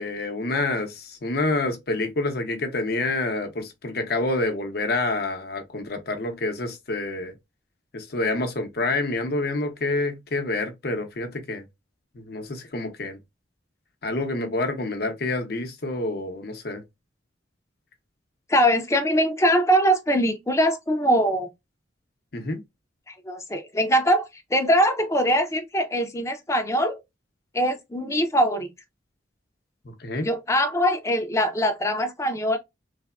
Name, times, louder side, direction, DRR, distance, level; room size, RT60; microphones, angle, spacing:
voice 1, 0.0-7.3 7.9-11.6 12.1-13.2 14.0-16.8 22.3-22.6 29.8-30.3, left 2 dB, 55° left, 0.7 m, -28 dB
voice 2, 18.5-21.5 23.1-27.0 27.5-28.7 30.2-32.6, equal, 15° left, 0.5 m, -22 dB
3.4 x 2.1 x 2.3 m
head